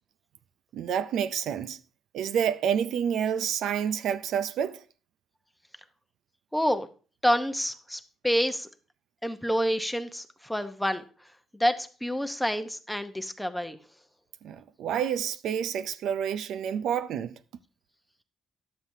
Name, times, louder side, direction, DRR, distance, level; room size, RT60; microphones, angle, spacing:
voice 1, 0.7-1.8 2.1-4.8 14.4-17.3, right 8 dB, 80° right, 0.4 m, -29 dB
voice 2, 6.5-6.9 7.2-8.7 9.2-11.0 11.5-13.8, equal, 5° left, 0.8 m, -28 dB
11.0 x 7.4 x 2.7 m
cardioid pair, 90°, 0 cm